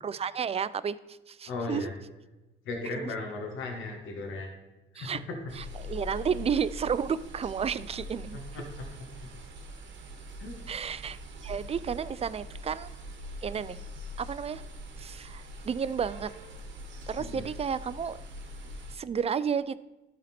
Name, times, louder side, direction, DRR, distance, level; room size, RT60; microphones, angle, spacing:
voice 1, 0.0-1.9 3.0-3.1 5.0-5.2 5.6-8.4 10.7-12.9 13.4-13.8 14.2-14.6 15.0-16.3 17.1-18.2 18.9-19.8, right 7 dB, 30° right, 16 dB, 0.4 m, -32 dB
voice 2, 1.5-1.9 2.6-4.5 4.9-5.4 8.5-9.1 10.4-10.6 17.2-17.5, left 3 dB, 80° left, 2 dB, 1.6 m, -36 dB
sound 1, 5.5-19.0, left 1 dB, 65° right, 1.3 m, -43 dB
12.5 x 4.2 x 4.3 m, 1.1 s
cardioid pair, 90°, 20 cm